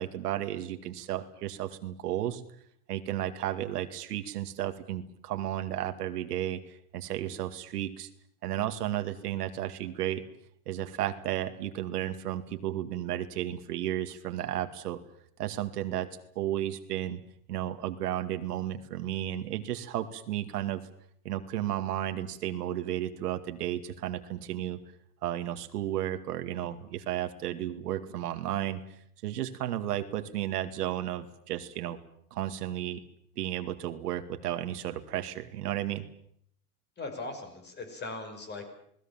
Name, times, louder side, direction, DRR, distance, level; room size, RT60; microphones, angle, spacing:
voice 1, 0.0-2.4 2.9-6.6 6.9-8.1 8.4-10.2 10.7-15.0 15.4-16.1 16.4-17.2 17.5-20.8 21.2-24.8 25.2-28.8 29.2-32.0 32.3-33.0 33.4-36.0, right 12 dB, 85° right, 9 dB, 2.3 m, -33 dB
voice 2, 37.0-38.7, left 3 dB, 20° left, 7 dB, 5.8 m, -39 dB
28.0 x 19.5 x 7.4 m, 0.68 s
supercardioid pair, 135°, 46 cm